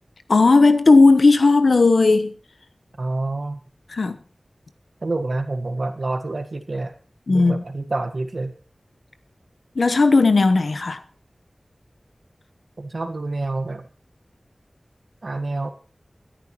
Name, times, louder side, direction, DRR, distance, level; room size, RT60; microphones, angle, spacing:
voice 1, 0.3-2.3 3.9-4.2 7.3-7.6 9.7-11.0, left 3 dB, 85° left, 1.0 m, -15 dB
voice 2, 3.0-3.6 5.0-6.9 7.3-8.5 12.8-13.9 15.2-15.7, right 2 dB, 70° right, 1.4 m, -27 dB
21.5 x 10.5 x 3.1 m
wide cardioid pair, 45°, 0 cm